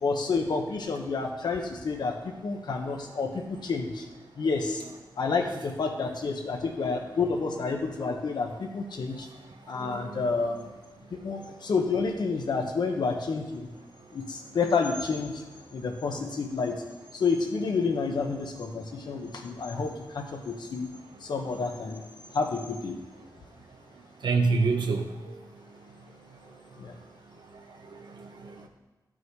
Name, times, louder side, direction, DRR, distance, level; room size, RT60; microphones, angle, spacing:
voice 1, 0.0-2.1 2.4-4.0 4.4-4.8 5.2-9.3 9.7-10.6 11.1-13.7 14.1-15.4 15.7-16.7 17.1-20.9 21.2-22.0 22.3-23.0 26.8-26.9, left 4 dB, 80° left, 3 dB, 1.3 m, -29 dB
voice 2, 9.8-10.3 24.2-25.4 28.1-28.7, right 4 dB, 85° right, 5 dB, 1.0 m, -28 dB
13.0 x 6.2 x 4.8 m, 1.2 s
wide cardioid pair, 175°, 7 cm